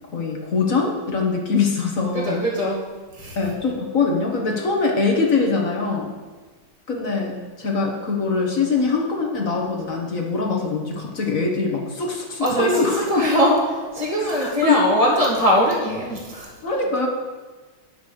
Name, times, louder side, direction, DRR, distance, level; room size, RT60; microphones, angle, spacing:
voice 1, 0.1-2.4 3.3-6.1 6.9-13.0 14.2-14.8 16.6-17.1, left 4 dB, 45° left, 1 dB, 1.5 m, -23 dB
voice 2, 2.1-2.8 3.1-3.4 12.4-16.5, equal, 20° left, -4 dB, 1.6 m, -21 dB
10.5 x 6.1 x 6.3 m, 1.3 s
omnidirectional pair, 2.3 m